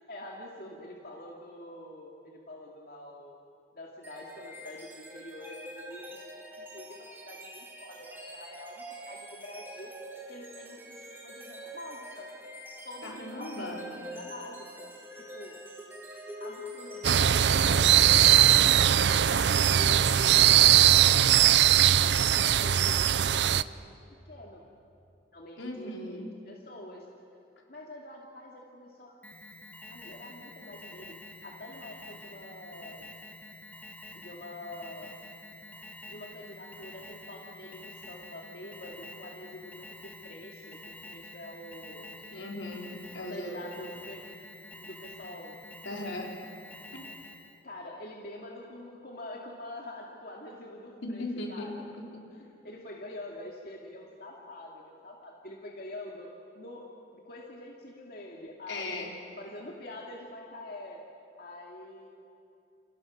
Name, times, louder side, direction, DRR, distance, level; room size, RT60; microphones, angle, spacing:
voice 1, 0.1-6.2 6.6-9.9 10.3-12.3 12.8-15.6 16.3-20.3 21.0-21.2 21.4-21.5 22.4-24.0 24.2-24.6 25.3-27.1 27.7-29.1 29.9-31.1 31.4-33.1 34.1-35.2 36.1-42.1 43.2-44.2 44.8-45.5 47.6-51.8 52.3-56.3 56.5-56.8 57.1-59.1 59.4-61.0 61.4-62.1, left 1 dB, 50° left, -1 dB, 2.4 m, -46 dB
sound 1, 4.0-20.7, equal, 10° right, 4.1 m, -45 dB
voice 2, 13.0-13.9 25.6-26.3 42.3-43.6 45.8-46.3 46.9-47.1 51.0-51.7 52.1-52.3 58.7-59.2, left 2 dB, 80° left, 0 dB, 4.3 m, -38 dB
sound 2, 17.0-23.6, right 10 dB, 65° right, 0.5 m, -20 dB
Alarm, 29.2-47.6, left 2 dB, 10° left, 1.5 m, -48 dB
29.5 x 28.5 x 6.5 m, 2.6 s
head